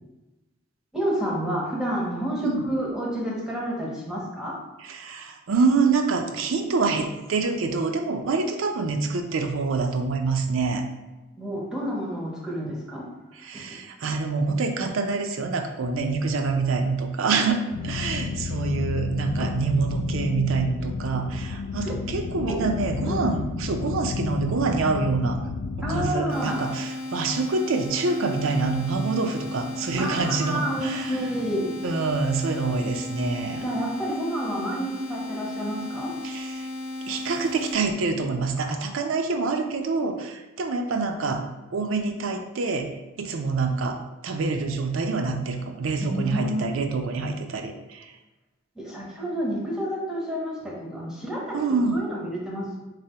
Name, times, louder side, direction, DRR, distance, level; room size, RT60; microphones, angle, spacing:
voice 1, 0.9-4.6 11.4-13.1 13.5-13.6 19.4-19.5 21.8-22.0 22.4-22.7 23.0-23.3 25.8-26.6 30.0-31.7 33.6-36.1 38.6-39.0 46.0-46.6 48.8-51.6 51.9-52.8, equal, 5° right, -4 dB, 0.7 m, -29 dB
voice 2, 4.8-10.8 13.3-25.4 25.8-31.2 31.8-33.6 36.2-36.7 37.1-41.4 41.7-42.9 43.2-48.1 51.5-52.1, right 4 dB, 70° right, 5 dB, 0.4 m, -26 dB
sound 1, 17.7-26.1, left 5 dB, 85° left, 0.3 m, -31 dB
sound 2, 26.3-37.7, left 2 dB, 40° left, 0.8 m, -35 dB
3.7 x 3.4 x 2.8 m, 1.1 s
head